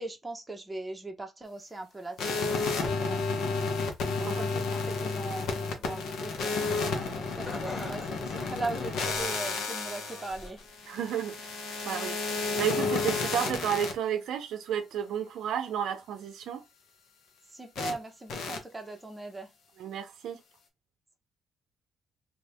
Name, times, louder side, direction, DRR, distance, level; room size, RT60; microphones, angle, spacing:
voice 1, 0.0-3.8 4.2-10.6 17.5-19.5, right 2 dB, 15° right, 0.9 m, -40 dB
sound 1, 2.2-13.9 17.8-17.9 18.3-18.6, left 4 dB, 75° left, 0.9 m, -31 dB
Laughter, 7.4-9.6 10.0-10.7 11.2-11.3 12.2-12.3, left 2 dB, 25° left, 1.3 m, -44 dB
voice 2, 10.9-16.6 19.8-20.4, right 9 dB, 80° right, 0.6 m, -32 dB
2.7 x 2.7 x 3.4 m
cardioid pair, 90°, 0 cm